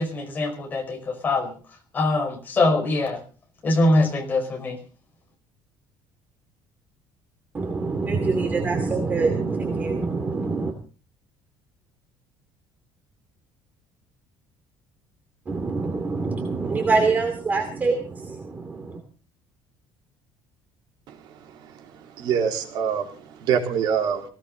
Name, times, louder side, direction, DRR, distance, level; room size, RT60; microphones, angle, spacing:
voice 1, 0.0-1.6 1.9-3.2 3.6-4.8, left 2 dB, 20° left, 3 dB, 5.0 m, -23 dB
voice 2, 7.5-10.7 15.5-19.0, right 4 dB, 20° right, 5 dB, 2.6 m, -25 dB
voice 3, 22.2-24.2, right 7 dB, 60° right, 3 dB, 3.8 m, -25 dB
19.0 x 18.5 x 4.0 m, 0.39 s
cardioid pair, 175°, 8 cm